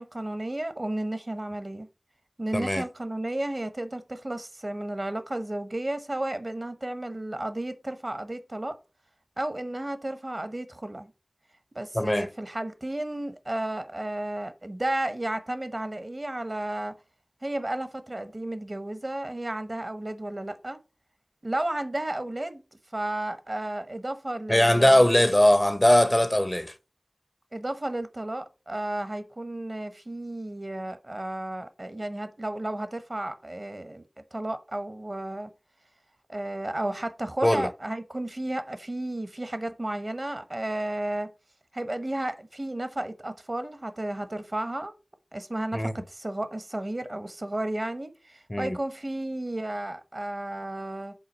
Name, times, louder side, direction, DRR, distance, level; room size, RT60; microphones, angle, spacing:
voice 1, 0.0-1.9 2.4-8.8 9.4-11.1 11.7-17.0 17.4-20.8 21.4-22.6 22.9-25.2 27.5-34.0 34.3-35.5 36.3-41.3 41.7-44.9 45.3-51.1, right 1 dB, 50° right, 0.9 m, -33 dB
voice 2, 2.5-2.8 11.9-12.3 24.5-26.7 37.4-37.7 45.7-45.9 48.5-48.8, left 1 dB, 25° left, 0.6 m, -20 dB
5.6 x 3.8 x 6.0 m
wide cardioid pair, 45°, 0 cm